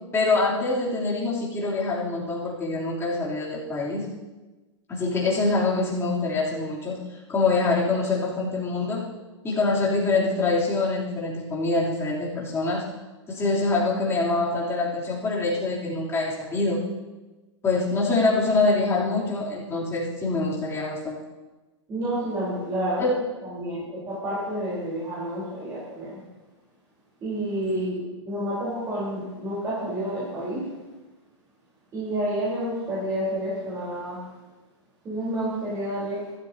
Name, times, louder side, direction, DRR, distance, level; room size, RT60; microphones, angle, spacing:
voice 1, 0.1-4.1 4.9-9.1 9.4-12.9 13.3-16.8 17.6-21.2 23.0-23.2 27.7-27.9, left 3 dB, 15° left, -6 dB, 3.8 m, -25 dB
voice 2, 21.9-23.0 23.4-26.2 27.2-30.7 31.9-34.3 35.0-36.2, right 1 dB, 20° right, -9 dB, 4.7 m, -29 dB
14.5 x 13.0 x 3.1 m, 1.2 s
hypercardioid pair, 125°, 16 cm